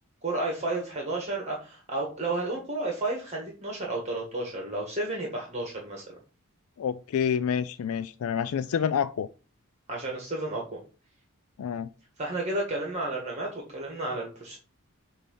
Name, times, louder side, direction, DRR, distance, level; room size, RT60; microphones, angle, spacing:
voice 1, 0.2-6.1 9.9-10.7 12.2-14.6, right 2 dB, 30° right, -1 dB, 1.5 m, -32 dB
voice 2, 6.8-9.3 11.6-11.9, left 7 dB, 80° left, 12 dB, 0.4 m, -28 dB
8.1 x 2.9 x 5.4 m, 0.36 s
head